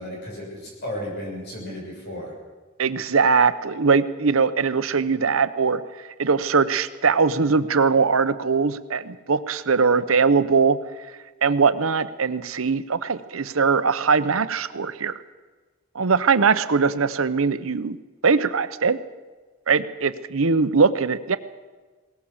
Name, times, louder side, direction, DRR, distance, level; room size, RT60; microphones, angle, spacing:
voice 1, 0.0-2.3, left 1 dB, 55° left, -1 dB, 6.7 m, -34 dB
voice 2, 2.8-5.8 6.2-10.8 11.4-15.1 15.9-18.0 18.2-19.0 19.7-21.4, right 5 dB, 80° right, 13 dB, 0.9 m, -21 dB
20.5 x 18.5 x 7.2 m, 1.4 s
head